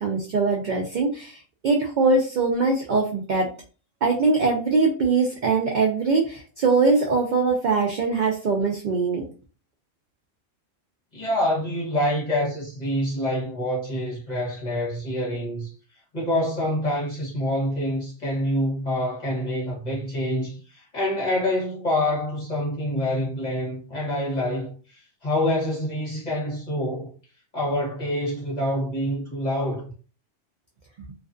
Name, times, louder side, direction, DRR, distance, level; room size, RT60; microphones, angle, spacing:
voice 1, 0.0-1.4 1.6-3.5 4.0-9.2, right 4 dB, 70° right, 0.4 m, -22 dB
voice 2, 11.1-15.7 16.1-27.1 27.5-29.8, left 1 dB, 35° left, 1.0 m, -26 dB
2.4 x 2.3 x 2.4 m
omnidirectional pair, 1.3 m